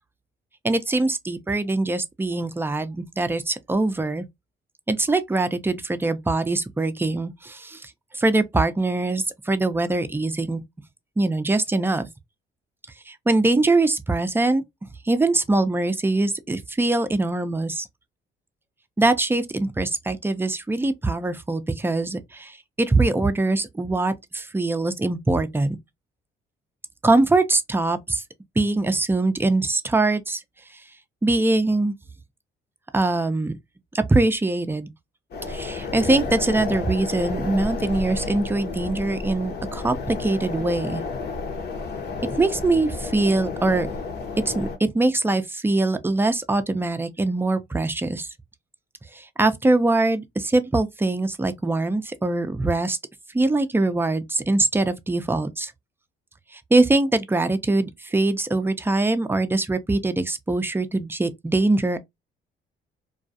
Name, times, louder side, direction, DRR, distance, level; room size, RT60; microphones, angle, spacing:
voice 1, 0.6-4.2 4.9-10.6 11.2-12.1 13.1-14.6 15.1-17.9 19.0-25.8 27.0-28.2 28.6-30.4 31.2-31.9 32.9-33.5 33.9-34.9 35.5-41.0 42.2-43.9 44.5-48.3 49.1-53.0 53.3-55.7 56.5-62.0, right 2 dB, 10° right, 0.4 m, -23 dB
sound 1, 35.3-44.8, left 4 dB, 50° left, 0.8 m, -31 dB
2.3 x 2.3 x 2.6 m
supercardioid pair, 75°, 21 cm